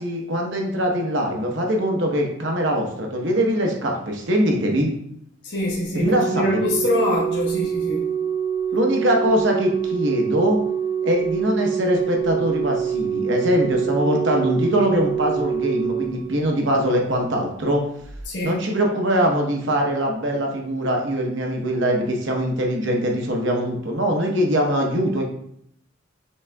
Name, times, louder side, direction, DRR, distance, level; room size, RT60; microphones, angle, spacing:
voice 1, 0.0-4.9 5.9-6.7 8.7-10.6 11.0-17.8 18.4-25.2, equal, 60° right, 1 dB, 0.9 m, -22 dB
voice 2, 5.4-8.1 18.3-18.6, left 1 dB, 55° left, -6 dB, 1.0 m, -25 dB
Organ, 6.0-16.9 18.0-18.2, right 8 dB, 20° right, 0.4 m, -25 dB
6.2 x 3.6 x 2.2 m, 0.70 s
head